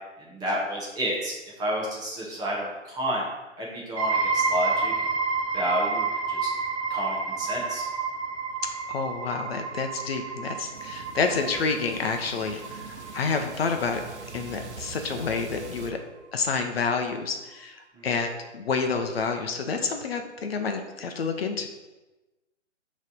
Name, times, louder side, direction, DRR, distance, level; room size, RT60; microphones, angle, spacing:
voice 1, 0.2-3.3 3.6-4.9 5.5-6.5 6.9-7.9 17.9-18.1, equal, 10° right, -4 dB, 0.9 m, -30 dB
sound 1, 4.0-15.4, right 4 dB, 25° right, 0.5 m, -30 dB
voice 2, 8.9-14.0 14.3-16.0 16.3-21.7, left 5 dB, 55° left, 5 dB, 0.8 m, -29 dB
sound 2, 10.7-15.9, right 5 dB, 65° right, 0.9 m, -43 dB
6.4 x 3.2 x 5.4 m, 1.1 s
figure-of-eight pair, 140°, 37 cm